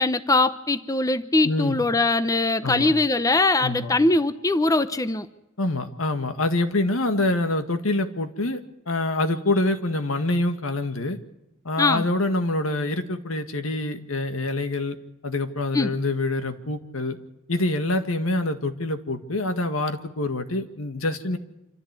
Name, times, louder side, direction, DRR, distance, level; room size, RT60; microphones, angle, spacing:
voice 1, 0.0-5.3 11.8-12.1 15.7-15.9, left 2 dB, 15° left, 12 dB, 0.7 m, -21 dB
voice 2, 1.4-1.8 2.6-2.9 3.6-3.9 5.6-8.6 8.9-11.2 11.7-15.0 15.2-17.2 17.5-21.4, left 2 dB, 85° left, 8 dB, 1.9 m, -26 dB
26.5 x 14.0 x 8.3 m, 0.92 s
head